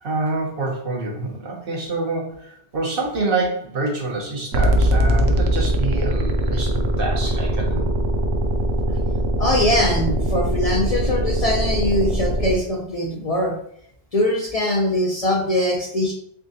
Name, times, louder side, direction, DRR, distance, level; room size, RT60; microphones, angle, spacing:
voice 1, 0.0-7.9, right 2 dB, 60° right, -2 dB, 1.2 m, -26 dB
sound 1, 4.5-12.5, right 1 dB, 85° right, 0.8 m, -21 dB
voice 2, 9.4-13.5 14.1-16.1, left 1 dB, 45° left, -1 dB, 0.5 m, -22 dB
3.6 x 3.5 x 2.7 m, 0.68 s
omnidirectional pair, 1.1 m